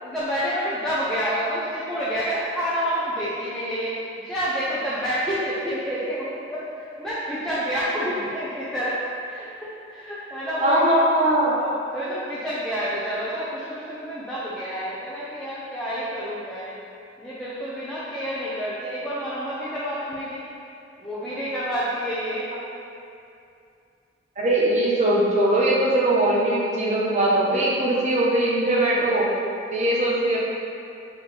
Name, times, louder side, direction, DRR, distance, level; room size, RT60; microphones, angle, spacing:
voice 1, 0.0-3.9 4.2-9.0 9.3-9.4 9.9-11.0 11.6-16.7 17.2-20.4 21.0-22.5, equal, 5° left, -11 dB, 0.7 m, -28 dB
voice 2, 10.6-11.5 24.4-29.3 29.7-30.4, right 1 dB, 40° right, -5 dB, 0.9 m, -20 dB
7.0 x 4.7 x 3.4 m, 2.6 s
head